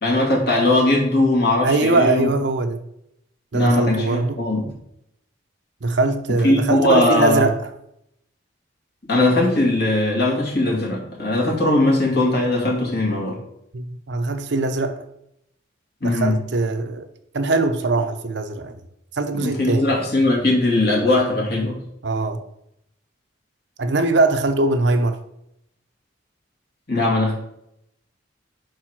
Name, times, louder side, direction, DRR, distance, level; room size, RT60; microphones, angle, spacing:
voice 1, 0.0-2.3 3.5-4.7 6.3-7.5 9.0-13.4 16.0-16.4 19.4-21.8 26.9-27.3, left 2 dB, 55° left, -3 dB, 2.2 m, -19 dB
voice 2, 1.6-2.8 3.5-4.4 5.8-7.6 13.7-15.0 16.0-17.1 17.3-18.8 19.1-19.9 22.0-22.4 23.8-25.2, right 3 dB, 65° right, 7 dB, 0.6 m, -21 dB
4.6 x 4.5 x 6.0 m, 0.79 s
head